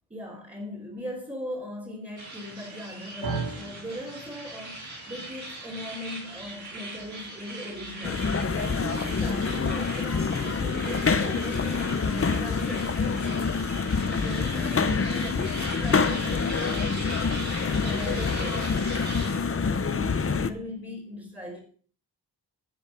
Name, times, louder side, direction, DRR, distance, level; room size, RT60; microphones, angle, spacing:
voice 1, 0.1-13.6 14.2-16.9 17.6-19.2 19.5-21.6, left 1 dB, 15° right, -6 dB, 3.5 m, -39 dB
sound 1, 2.2-19.4, right 2 dB, 45° right, 5.7 m, -40 dB
sound 2, 3.2-11.5, right 4 dB, 65° right, 2.2 m, -42 dB
sound 3, 8.0-20.5, left 5 dB, 35° left, 0.8 m, -26 dB
12.5 x 6.9 x 5.7 m, 0.44 s
wide cardioid pair, 105°, 40 cm